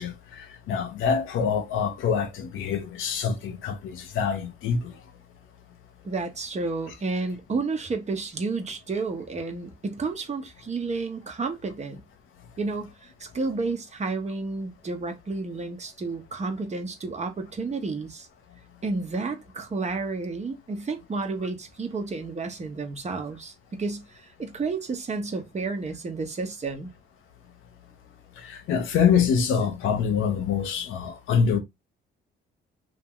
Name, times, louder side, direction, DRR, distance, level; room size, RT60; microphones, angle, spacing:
voice 1, 0.0-4.9 28.4-31.6, left 6 dB, 85° left, 1.0 m, -25 dB
voice 2, 6.0-12.0 12.6-18.3 18.8-26.9, right 3 dB, 35° right, 1.1 m, -31 dB
2.9 x 2.7 x 3.7 m
cardioid pair, 90°, 20 cm